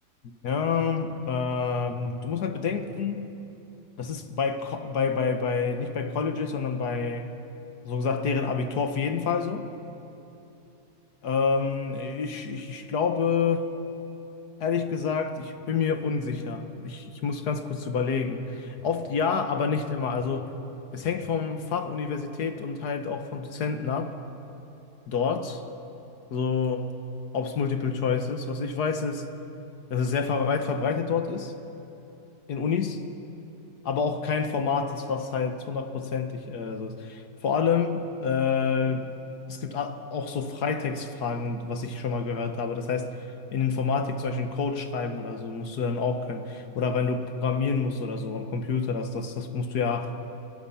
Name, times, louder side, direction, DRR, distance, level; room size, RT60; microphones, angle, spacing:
voice 1, 0.4-3.3 4.0-7.3 7.9-9.7 11.2-13.7 14.6-20.5 20.9-24.2 25.1-25.6 26.3-26.9 27.3-29.3 29.9-31.5 32.5-33.0 33.9-39.1 39.5-43.2 43.5-50.1, left 5 dB, 85° left, 7 dB, 1.8 m, -28 dB
27.0 x 18.0 x 5.7 m, 2.9 s
omnidirectional pair, 1.7 m